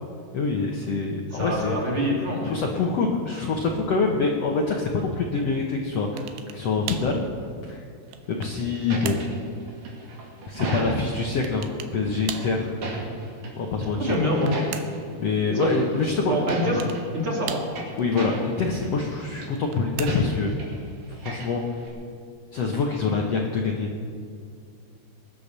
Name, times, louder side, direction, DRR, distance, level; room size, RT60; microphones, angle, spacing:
voice 1, 0.3-1.8 2.4-6.3 6.5-7.2 7.6-7.8 8.3-9.2 10.5-12.7 13.5-14.2 15.2-16.7 18.0-20.5 21.1-21.6 22.5-23.9, left 4 dB, 80° left, 0 dB, 1.4 m, -25 dB
voice 2, 1.3-2.7 14.0-14.5 15.5-15.7 16.3-16.8 17.1-17.6, equal, 35° right, -3 dB, 3.3 m, -25 dB
sound 1, 6.2-6.6 6.9-7.2 7.8-8.6 9.1-9.3 11.4-12.0 12.3-12.6 14.0-15.1 16.5-17.0 17.5-18.0 19.4-20.4, right 10 dB, 80° right, 2.7 m, -37 dB
sound 2, 8.2-11.3 12.2-13.5 13.8-15.0 15.6-16.0 16.3-17.0 17.4-18.9 19.1-19.5 20.1-20.8 21.1-21.9, right 3 dB, 60° right, 4.3 m, -35 dB
21.0 x 10.0 x 6.7 m, 2.3 s
omnidirectional pair, 4.7 m